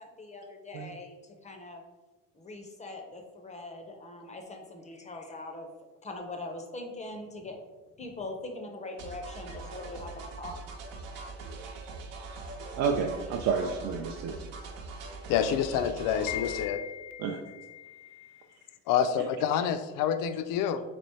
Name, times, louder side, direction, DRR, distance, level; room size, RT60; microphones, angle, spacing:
voice 1, 0.0-1.8 2.3-5.7 6.0-7.6 8.0-10.6, left 2 dB, 20° left, 3 dB, 0.5 m, -42 dB
sound 1, 9.0-16.7, right 3 dB, 85° right, 0.9 m, -42 dB
voice 2, 12.8-14.4 17.2-17.4, right 6 dB, 55° right, 2 dB, 0.4 m, -30 dB
voice 3, 15.3-18.4 18.9-20.8, left 8 dB, 75° left, 11 dB, 0.5 m, -29 dB
3.4 x 3.4 x 4.2 m, 1.2 s
cardioid pair, 160°, 34 cm